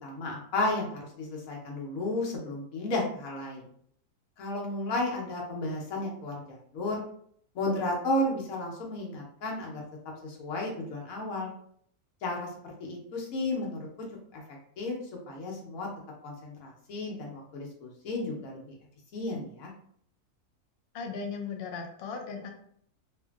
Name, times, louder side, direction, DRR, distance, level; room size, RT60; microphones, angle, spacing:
voice 1, 0.0-3.6 4.4-7.0 7.5-9.8 10.2-11.5 12.2-13.9 14.3-14.4 14.8-14.9 15.3-15.9 16.2-18.6 19.1-19.7, left 2 dB, 65° left, -2 dB, 1.2 m, -33 dB
voice 2, 20.9-22.5, left 5 dB, 90° left, 3 dB, 0.5 m, -37 dB
3.0 x 2.5 x 2.3 m, 0.64 s
omnidirectional pair, 1.7 m